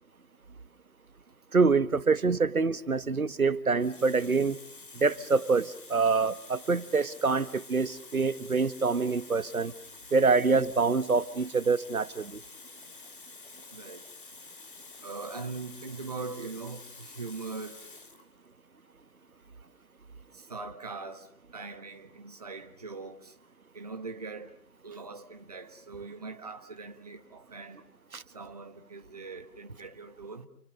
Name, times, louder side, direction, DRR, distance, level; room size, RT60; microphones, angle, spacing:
voice 1, 1.5-4.6 4.9-9.7 10.1-12.4 28.1-28.2, right 4 dB, 65° right, 1.6 m, -26 dB
Water tap faucet, 3.0-3.2 3.8-18.3 19.2-19.4, left 3 dB, 35° left, 2.6 m, -49 dB
voice 2, 13.7-14.0 15.0-17.8 20.3-23.3 23.7-24.6 24.8-27.8 28.3-30.5, right 4 dB, 25° right, 1.4 m, -41 dB
29.0 x 27.5 x 6.6 m
figure-of-eight pair, 170°, 46 cm